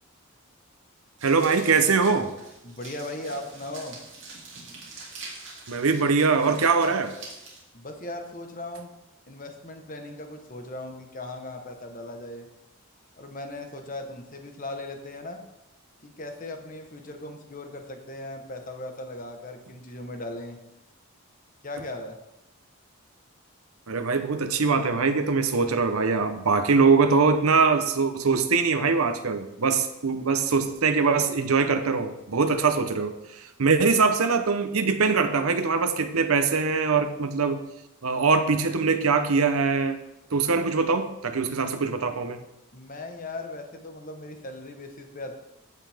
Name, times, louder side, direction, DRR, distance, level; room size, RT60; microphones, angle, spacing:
sound 1, 1.2-7.6, right 3 dB, 55° right, 2.8 m, -45 dB
voice 1, 1.2-2.3 5.7-7.1 23.9-37.6 38.0-40.0 40.3-42.4, right 4 dB, 85° right, 8 dB, 0.8 m, -22 dB
voice 2, 2.6-4.0 7.7-8.9 9.3-12.5 13.1-15.4 16.0-20.6 21.6-22.2 42.7-45.4, left 2 dB, 40° left, 5 dB, 1.1 m, -38 dB
14.5 x 5.6 x 3.5 m, 0.90 s
head